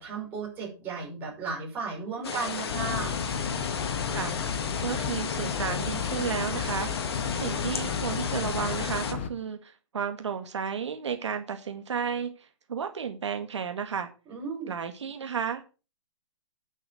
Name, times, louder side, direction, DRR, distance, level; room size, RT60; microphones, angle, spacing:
voice 1, 0.0-3.1 14.3-14.7, right 4 dB, 10° right, -4 dB, 5.9 m, -35 dB
sound 1, 2.2-9.1, left 6 dB, 55° left, 2.5 m, -34 dB
sound 2, 2.7-9.3, left 7 dB, 20° left, 0.9 m, -33 dB
voice 2, 4.1-14.1 14.7-15.7, right 7 dB, 65° right, 6 dB, 1.9 m, -33 dB
9.8 x 7.7 x 6.3 m, 0.34 s
hypercardioid pair, 180°, 16 cm